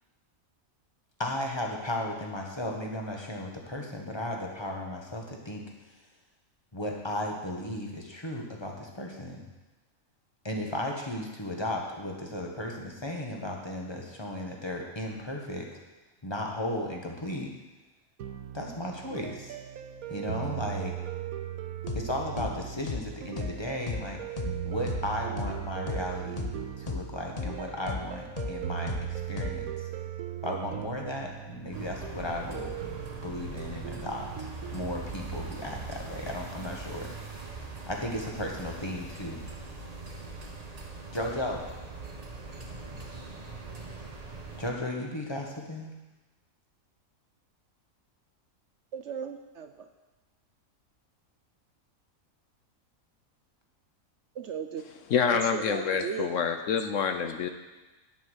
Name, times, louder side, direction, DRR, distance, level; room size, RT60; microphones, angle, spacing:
voice 1, 1.2-5.6 6.7-9.5 10.4-15.7 16.2-17.5 18.5-19.5 20.1-20.9 21.9-24.2 24.6-29.9 30.4-32.7 33.2-37.1 37.9-39.4 41.1-41.6 44.6-45.9, left 1 dB, 20° left, 0 dB, 1.5 m, -35 dB
sound 1, 18.2-34.9, right 11 dB, 85° right, 1.2 m, -38 dB
sound 2, 21.9-22.0 22.4-22.5 22.9-23.0 23.4-23.5 23.9-24.0 24.4-24.5 24.9-25.0 25.4-25.5 25.9-26.0 26.4-26.5 26.9-27.0 27.4-27.5 27.9-28.0 28.4-28.5 28.9-29.0 29.4-29.5, left 5 dB, 35° left, 0.7 m, -34 dB
sound 3, 31.7-44.7, right 3 dB, 30° right, 1.2 m, -41 dB
voice 2, 48.9-49.9 54.3-54.8 55.3-56.4, right 7 dB, 60° right, 7 dB, 0.8 m, -36 dB
voice 3, 55.1-57.5, left 7 dB, 65° left, 7 dB, 1.1 m, -27 dB
9.7 x 8.3 x 6.4 m, 1.1 s
omnidirectional pair, 1.5 m